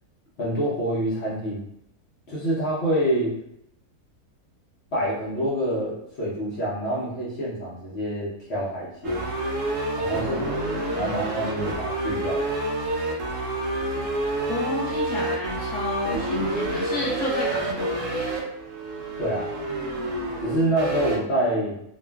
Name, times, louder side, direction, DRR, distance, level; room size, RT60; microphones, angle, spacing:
voice 1, 0.4-1.7 2.3-3.4 4.9-9.3 10.0-12.4 19.2-19.5 20.4-21.8, right 1 dB, 55° left, -7 dB, 0.8 m, -27 dB
sound 1, 9.0-21.2, right 1 dB, 65° right, 0.9 m, -28 dB
voice 2, 14.5-18.3, left 2 dB, 10° left, -8 dB, 0.4 m, -31 dB
2.9 x 2.4 x 2.2 m, 0.78 s
omnidirectional pair, 1.6 m